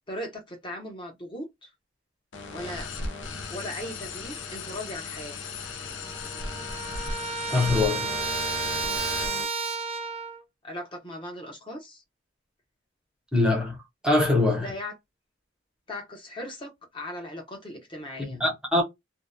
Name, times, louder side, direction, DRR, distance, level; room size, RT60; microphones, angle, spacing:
voice 1, 0.1-1.7 2.5-2.9 3.5-5.3 10.6-12.0 14.6-14.9 15.9-18.4, left 1 dB, 25° left, 0.9 m, -38 dB
sound 1, 2.3-9.4, left 3 dB, 70° left, 0.6 m, -36 dB
Trumpet, 5.6-5.7 6.0-10.4, right 4 dB, 30° right, 0.4 m, -32 dB
voice 2, 7.5-8.1 13.3-13.8 14.0-14.7 18.4-18.8, left 2 dB, 5° right, 0.8 m, -23 dB
2.7 x 2.2 x 2.2 m
head